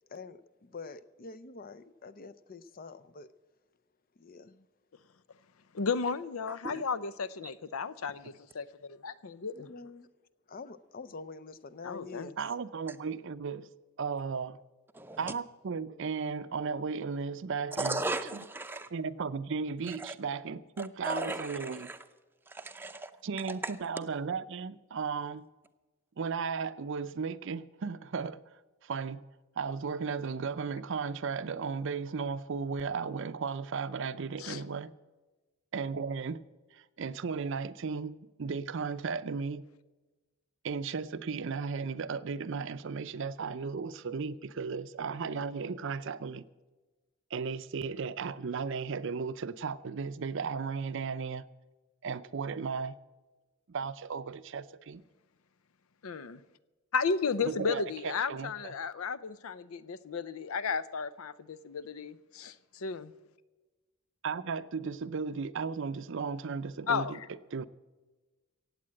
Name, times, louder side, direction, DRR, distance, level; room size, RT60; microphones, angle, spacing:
voice 1, 0.1-3.3 4.2-4.7 9.5-10.1 10.5-12.4, left 4 dB, 45° left, 0.5 m, -46 dB
voice 2, 5.7-9.7 11.8-12.3 34.4-34.6 56.0-56.4 56.9-63.1 66.9-67.3, left 5 dB, 90° left, 0.6 m, -34 dB
voice 3, 6.5-6.8 14.9-15.3 17.8-18.9 19.9-20.1 20.8-22.0 22.5-23.1 23.6-23.7, right 2 dB, 10° right, 0.6 m, -36 dB
voice 4, 12.4-13.7 14.0-14.6 15.2-18.0 18.3-18.4 18.9-21.9 23.2-25.5 26.2-29.2 29.6-34.9 35.7-36.4 36.7-39.7 40.6-46.4 47.3-51.5 52.0-53.0 53.7-55.0 57.4-58.7 64.2-67.2 67.5-67.6, right 5 dB, 60° right, 0.5 m, -35 dB
16.0 x 8.5 x 7.6 m
head